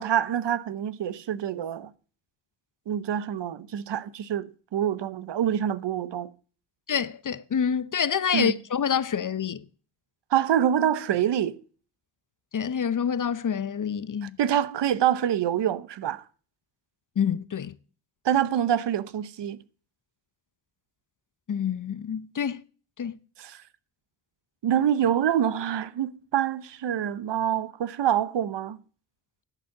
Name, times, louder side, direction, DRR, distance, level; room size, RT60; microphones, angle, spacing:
voice 1, 0.0-1.9 2.9-6.3 8.3-8.5 10.3-11.6 14.4-16.2 18.2-19.6 23.4-23.6 24.6-28.8, right 10 dB, 60° right, 0.9 m, -26 dB
voice 2, 6.9-9.7 12.5-14.4 17.2-17.7 21.5-22.6 23.0-23.2, left 7 dB, 40° left, 0.8 m, -27 dB
10.5 x 5.2 x 7.2 m
supercardioid pair, 45°, 48 cm